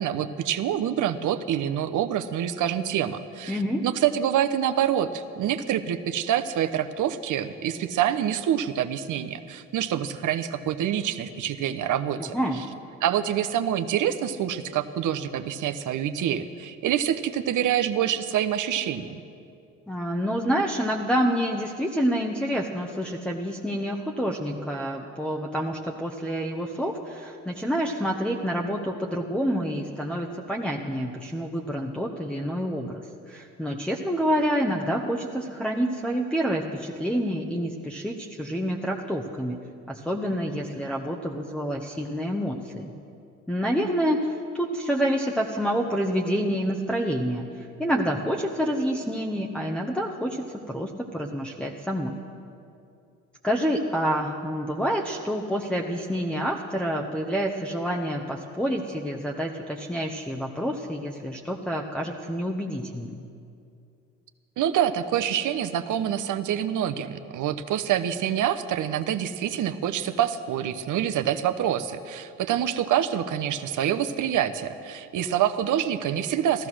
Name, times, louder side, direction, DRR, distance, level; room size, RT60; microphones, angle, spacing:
voice 1, 0.0-12.3 13.0-19.2 64.6-76.7, right 10 dB, 60° right, 9 dB, 0.9 m, -26 dB
voice 2, 3.5-3.8 12.3-12.7 19.9-39.6 39.9-42.9 43.5-52.1 53.4-63.2, equal, 5° left, -1 dB, 1.1 m, -28 dB
14.5 x 14.0 x 6.2 m, 2.5 s
hypercardioid pair, 65°, 35 cm